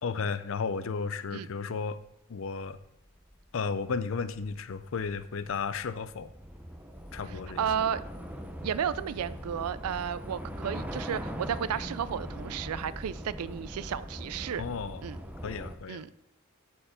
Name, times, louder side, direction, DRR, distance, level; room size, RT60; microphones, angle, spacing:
voice 1, 0.0-2.0 2.3-2.8 3.5-6.3 7.1-7.6 14.6-15.0 15.4-16.0, left 5 dB, 60° left, 14 dB, 0.5 m, -33 dB
Train / Subway metro underground, 2.4-2.5 2.8-15.8, equal, 5° right, 0.6 m, -41 dB
voice 2, 7.6-8.0 8.6-14.6 15.0-15.2 15.9-16.1, right 8 dB, 85° right, 16 dB, 0.4 m, -33 dB
12.0 x 4.4 x 4.4 m, 0.80 s
head